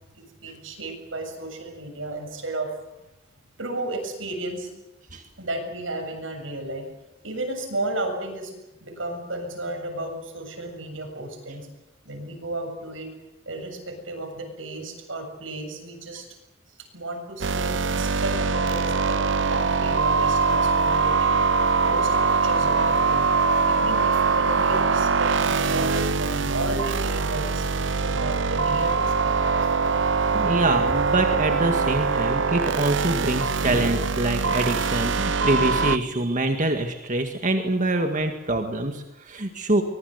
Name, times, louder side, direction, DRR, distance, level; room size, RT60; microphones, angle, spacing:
voice 1, 0.1-2.7 3.6-4.7 5.4-6.9 7.2-8.5 8.8-11.7 12.0-13.1 13.5-16.3 16.9-21.4 21.9-23.3 23.7-29.7, right 2 dB, 90° right, 4 dB, 7.5 m, -33 dB
sound 1, 17.4-36.0, right 4 dB, 70° right, 0.9 m, -23 dB
voice 2, 30.3-39.8, right 2 dB, 40° right, 5 dB, 1.9 m, -25 dB
24.5 x 22.0 x 8.0 m, 0.95 s
head